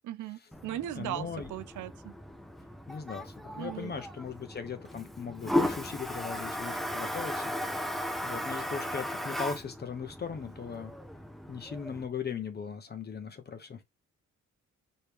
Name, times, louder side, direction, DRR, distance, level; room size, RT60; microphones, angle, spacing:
voice 1, 0.0-2.1 3.6-3.9, right 13 dB, 80° right, 0.5 m, -38 dB
Toilet flush, 0.5-12.0, left 1 dB, ahead, 0.7 m, -36 dB
voice 2, 0.9-1.5 2.9-10.9 11.5-13.8, left 6 dB, 35° left, 0.8 m, -39 dB
4.5 x 3.2 x 3.4 m
cardioid pair, 135°, 30 cm